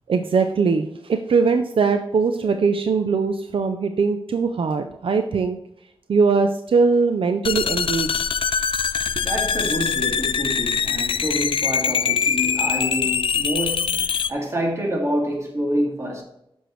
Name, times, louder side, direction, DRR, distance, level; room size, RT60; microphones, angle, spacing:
voice 1, 0.1-5.6 6.1-8.4, right 4 dB, 75° right, 0.5 m, -21 dB
sound 1, 7.4-14.3, left 7 dB, 70° left, 0.3 m, -23 dB
voice 2, 9.2-16.2, equal, 30° right, 2.3 m, -27 dB
7.7 x 6.4 x 3.2 m
wide cardioid pair, 110°, 9 cm